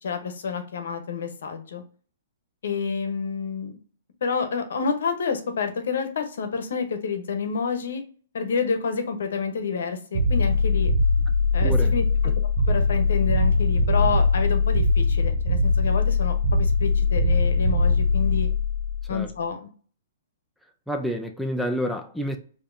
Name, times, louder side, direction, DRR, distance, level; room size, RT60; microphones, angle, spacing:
voice 1, 0.0-1.8 2.6-3.8 4.2-8.0 8.3-10.9 11.5-12.0 12.7-18.5 19.1-19.7, left 5 dB, 75° left, 0.8 m, -29 dB
sound 1, 10.1-19.2, left 3 dB, 60° right, 0.4 m, -21 dB
voice 2, 11.6-11.9 19.1-19.3 20.9-22.4, equal, ahead, 0.4 m, -28 dB
4.7 x 2.7 x 2.6 m
hypercardioid pair, 155°, 0 cm